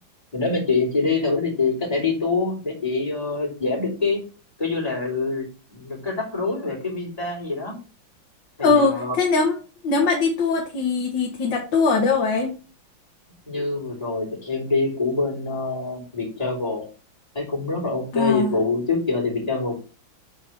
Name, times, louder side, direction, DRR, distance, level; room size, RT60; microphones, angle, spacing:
voice 1, 0.3-4.2 4.6-7.7 8.6-9.2 13.5-16.8 17.3-19.8, left 3 dB, 20° left, -6 dB, 3.3 m, -25 dB
voice 2, 8.6-9.6 9.8-12.5 18.1-18.5, left 4 dB, 65° left, 1 dB, 1.7 m, -21 dB
6.8 x 4.6 x 4.4 m, 0.36 s
omnidirectional pair, 2.2 m